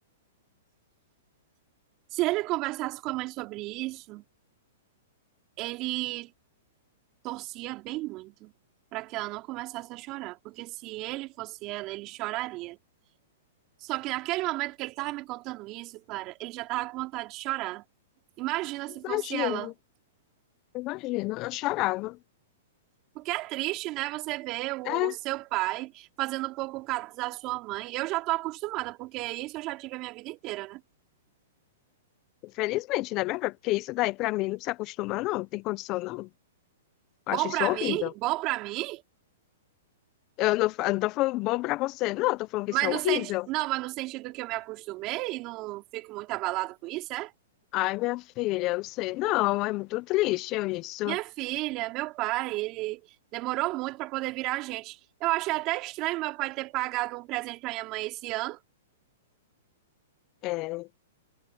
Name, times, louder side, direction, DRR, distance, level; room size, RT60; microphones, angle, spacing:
voice 1, 2.1-4.2 5.6-6.3 7.2-8.5 8.9-12.8 13.8-17.8 18.4-19.7 23.1-30.8 37.3-39.0 42.7-47.3 51.0-53.0 53.3-58.6, right 20 dB, 35° right, 3.3 m, -32 dB
voice 2, 19.0-19.7 20.7-22.2 24.9-25.2 32.4-36.3 37.3-38.1 40.4-43.5 47.7-51.2 60.4-60.9, left 20 dB, 35° left, 0.7 m, -28 dB
hypercardioid pair, 135°, 0 cm